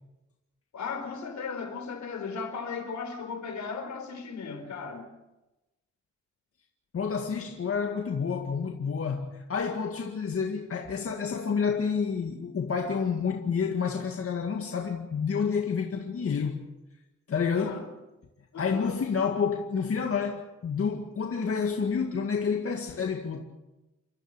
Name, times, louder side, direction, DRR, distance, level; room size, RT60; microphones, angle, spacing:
voice 1, 0.7-5.1 17.6-17.9 18.5-19.0, left 5 dB, 70° left, 4.3 m, -36 dB
voice 2, 6.9-16.6 17.3-17.8 18.6-23.4, left 6 dB, 50° left, 2.1 m, -29 dB
29.0 x 13.5 x 8.9 m
wide cardioid pair, 135°, 29 cm